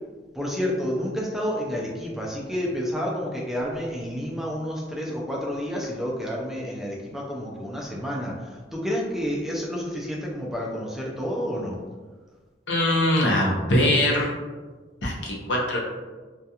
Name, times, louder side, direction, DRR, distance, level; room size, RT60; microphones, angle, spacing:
voice 1, 0.3-11.8, equal, ahead, -3 dB, 0.3 m, -30 dB
voice 2, 12.7-14.3 15.0-15.8, left 1 dB, 85° left, -2 dB, 0.6 m, -22 dB
2.3 x 2.2 x 2.7 m, 1.4 s
head